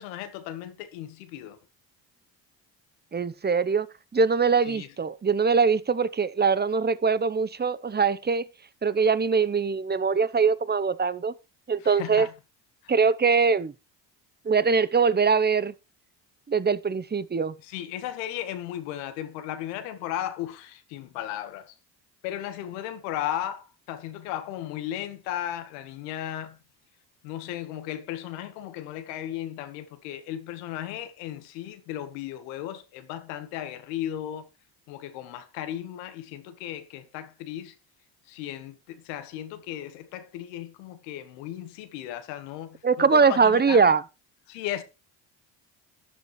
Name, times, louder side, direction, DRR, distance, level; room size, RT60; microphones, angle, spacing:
voice 1, 0.0-1.6 4.7-4.9 11.8-12.3 12.8-12.9 17.6-21.7 22.2-26.6 27.2-34.5 34.9-37.7 38.3-43.9 44.5-44.8, left 11 dB, 85° left, 1.6 m, -35 dB
voice 2, 3.1-3.9 4.1-8.4 8.8-11.3 11.7-12.3 12.9-13.7 14.5-15.7 16.5-17.5 42.8-44.0, right 5 dB, 20° right, 0.8 m, -22 dB
13.0 x 10.5 x 3.2 m
supercardioid pair, 65°, 49 cm